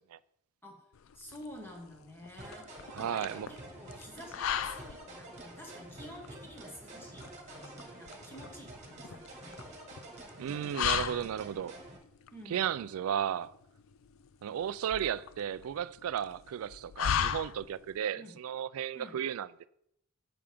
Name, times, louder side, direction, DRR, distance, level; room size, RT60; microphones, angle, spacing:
sound 1, 0.9-18.0, left 9 dB, 65° left, 0.4 m, -38 dB
voice 1, 1.1-9.6 12.3-12.6 18.1-18.3 18.9-19.2, equal, 10° left, 1.4 m, -50 dB
sound 2, 2.4-12.0, right 1 dB, 35° right, 1.6 m, -48 dB
voice 2, 2.9-3.5 10.4-11.8 12.5-13.5 14.4-19.5, right 9 dB, 75° right, 0.3 m, -34 dB
8.6 x 6.9 x 3.5 m
head